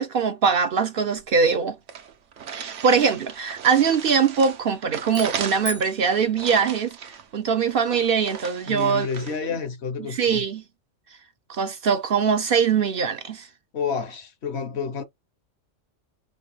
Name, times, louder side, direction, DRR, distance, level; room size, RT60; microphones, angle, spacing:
voice 1, 0.0-1.8 2.5-7.0 7.3-9.1 10.1-10.6 11.5-13.5, right 6 dB, 60° right, 0.7 m, -22 dB
sound 1, 1.2-1.3 1.5-1.6 1.9-9.4, right 7 dB, 75° right, 1.1 m, -37 dB
sound 2, 5.0-7.4, left 3 dB, 10° left, 0.5 m, -41 dB
voice 2, 8.7-10.4 13.7-15.0, left 6 dB, 65° left, 1.0 m, -29 dB
5.1 x 2.3 x 3.3 m
omnidirectional pair, 1.3 m